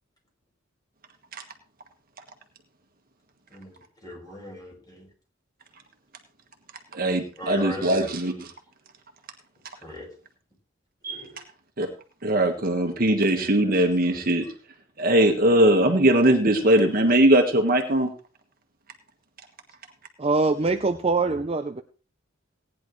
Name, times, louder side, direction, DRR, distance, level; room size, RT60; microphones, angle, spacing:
voice 1, 3.5-5.1 7.2-8.1 9.8-10.1 11.1-11.4 13.2-14.2 20.5-21.0 21.2-21.4, equal, 20° left, 5.3 m, -40 dB
voice 2, 6.9-8.3 11.0-11.2 11.8-11.9 12.2-14.5 15.0-18.1, right 1 dB, 45° right, 1.6 m, -20 dB
voice 3, 20.2-21.8, right 3 dB, 30° right, 0.6 m, -23 dB
18.0 x 10.0 x 3.2 m
head